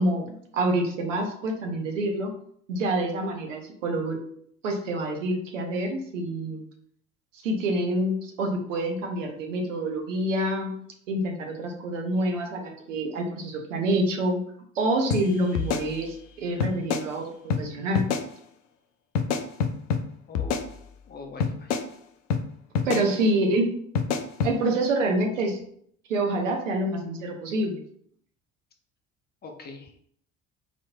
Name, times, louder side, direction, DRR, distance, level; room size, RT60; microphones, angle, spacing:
voice 1, 0.0-2.3 2.7-4.2 4.6-6.6 7.4-10.7 11.1-14.4 14.8-18.1 22.8-23.7 24.4-25.6 26.1-27.8, right 1 dB, 75° right, 2 dB, 0.8 m, -27 dB
sound 1, 15.1-15.2 15.6-16.3 16.6-17.1 17.5-17.6 18.0-18.3 19.2-20.0 20.4-21.1 21.4-21.9 22.3-22.4 22.8-23.1 24.0-24.5, left 6 dB, 70° left, 0.5 m, -27 dB
voice 2, 20.3-20.6 21.1-21.8 22.9-23.2 29.4-29.9, left 3 dB, 25° left, 3 dB, 0.6 m, -43 dB
4.0 x 3.1 x 2.2 m, 0.65 s
figure-of-eight pair, 55°, 39 cm